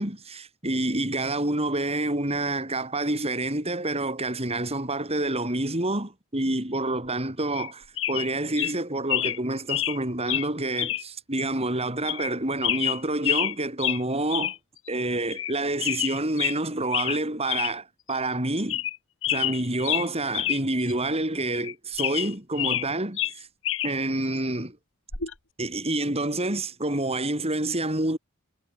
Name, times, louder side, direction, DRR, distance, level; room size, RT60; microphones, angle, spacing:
voice 1, 0.0-14.5 14.9-18.8 19.3-23.5 23.8-24.8 25.6-28.2, right 2 dB, 30° right, 5.9 m, -28 dB
sound 1, 7.5-7.7 8.0-8.3 8.6-8.7 9.1-9.4 9.7-10.0 10.3-10.5 10.8-11.0 11.4-11.5 12.1-12.3 12.6-13.5 13.8-14.0 14.3-14.6 14.9-15.0 15.3-15.5 15.8-16.6 16.9-17.2 17.5-17.7 18.1-18.2 18.6-19.0 19.2-20.6 20.9-21.0 21.5-22.9 23.2-23.9 25.1-25.3, left 13 dB, 60° left, 5.2 m, -28 dB
head